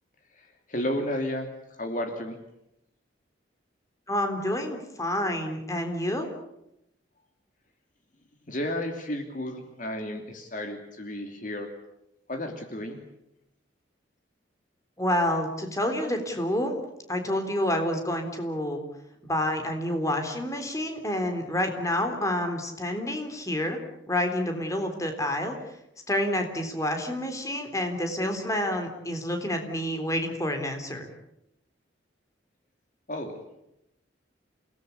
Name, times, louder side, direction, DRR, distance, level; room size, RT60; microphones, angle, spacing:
voice 1, 0.4-1.5 1.8-2.4 8.5-11.7 12.3-13.0 33.1-33.4, left 1 dB, 45° left, 5 dB, 2.9 m, -32 dB
voice 2, 4.1-6.3 15.0-16.8 17.1-18.8 19.2-23.8 24.1-25.6 26.1-31.1, left 1 dB, 15° left, 5 dB, 3.6 m, -28 dB
28.5 x 19.0 x 8.4 m, 0.84 s
head